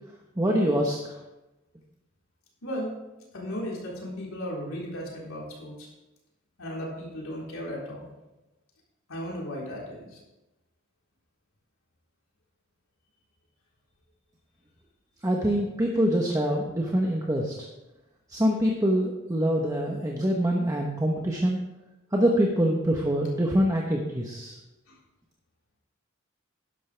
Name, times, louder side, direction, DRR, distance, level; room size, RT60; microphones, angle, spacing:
voice 1, 0.4-1.0 15.2-17.5 18.3-21.6 22.1-24.6, equal, 15° right, 0 dB, 1.0 m, -25 dB
voice 2, 2.6-2.9 3.3-5.9 6.6-8.1 9.1-10.2, equal, 75° left, -4 dB, 3.9 m, -35 dB
12.5 x 11.0 x 3.4 m, 1.0 s
head